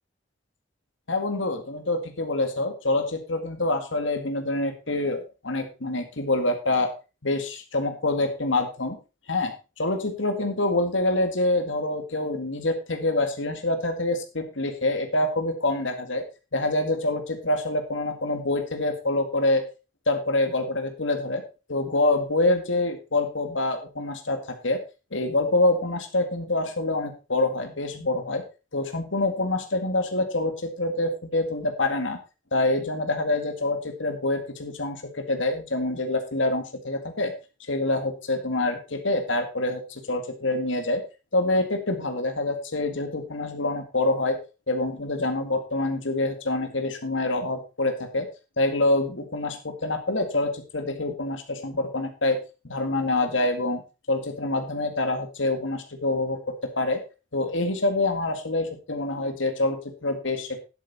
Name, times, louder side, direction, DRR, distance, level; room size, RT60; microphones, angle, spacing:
voice 1, 1.1-6.9 7.2-9.0 9.3-16.3 16.5-19.6 20.1-21.4 21.7-24.8 25.1-28.5 28.7-32.2 32.5-37.3 37.7-41.0 41.3-44.4 44.7-48.3 48.6-52.4 52.6-53.8 54.1-57.0 57.3-60.6, left 2 dB, 85° left, 6 dB, 2.0 m, -26 dB
11.0 x 8.4 x 4.2 m, 0.30 s
head